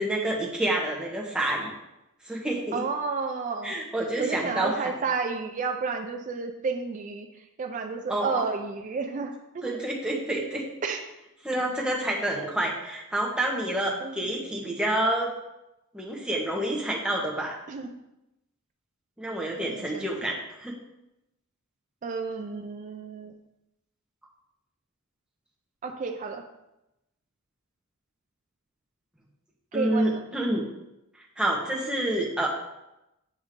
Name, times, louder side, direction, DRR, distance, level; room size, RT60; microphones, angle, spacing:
voice 1, 0.0-1.7 2.2-2.8 3.6-4.7 8.1-8.4 9.6-10.6 11.4-15.3 15.9-17.6 19.2-20.7 29.7-30.6 31.4-32.5, right 1 dB, 5° right, -2 dB, 0.9 m, -28 dB
voice 2, 2.7-3.8 4.2-9.8 10.8-11.0 14.0-14.2 17.7-18.0 19.6-20.3 22.0-23.3 25.8-26.4 29.7-30.2, right 4 dB, 35° right, 4 dB, 0.3 m, -31 dB
7.3 x 2.7 x 5.0 m, 0.92 s
head